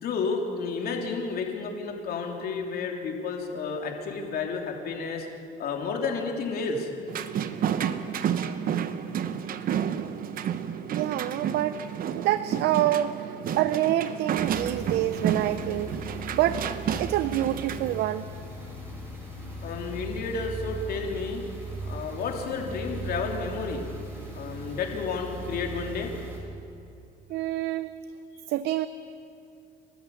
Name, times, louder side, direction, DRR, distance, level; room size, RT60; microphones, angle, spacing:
voice 1, 0.0-5.3 5.6-6.9 19.6-21.4 21.8-23.9 24.3-26.1, left 4 dB, 65° left, 2 dB, 3.1 m, -31 dB
sound 1, 7.1-18.0, right 8 dB, 60° right, 1.0 m, -31 dB
voice 2, 10.9-11.8 12.1-16.0 16.3-16.6 17.0-18.3 27.3-27.9 28.5-28.9, right 13 dB, 80° right, 13 dB, 0.6 m, -27 dB
sound 2, 14.4-26.4, right 2 dB, 15° right, 6.5 m, -38 dB
30.0 x 12.5 x 7.1 m, 2.5 s
cardioid pair, 110°, 17 cm